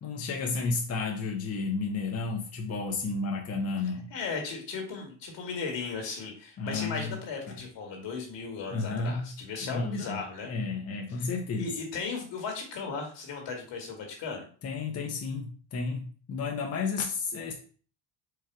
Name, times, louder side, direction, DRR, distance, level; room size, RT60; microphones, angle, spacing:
voice 1, 0.0-4.1 6.6-7.2 7.5-7.6 8.7-9.3 9.6-11.7 14.6-17.5, left 4 dB, 30° left, 0 dB, 0.8 m, -32 dB
voice 2, 4.1-10.5 11.2-11.3 11.6-14.4, left 4 dB, 65° left, 2 dB, 1.8 m, -36 dB
4.7 x 2.4 x 4.5 m, 0.42 s
cardioid pair, 105°, 46 cm